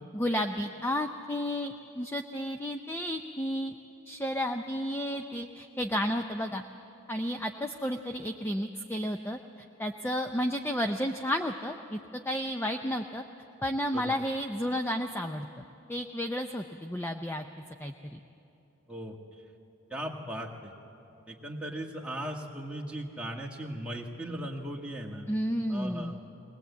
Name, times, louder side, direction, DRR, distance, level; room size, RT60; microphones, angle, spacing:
voice 1, 0.1-3.8 4.1-6.6 7.1-9.4 9.8-12.0 12.3-13.2 13.6-17.4 17.8-18.2 25.3-26.2, equal, 10° left, 5 dB, 0.4 m, -32 dB
voice 2, 19.9-20.7 21.3-25.3 25.7-26.4, right 1 dB, 5° right, -1 dB, 1.4 m, -38 dB
22.0 x 19.5 x 8.2 m, 2.8 s
head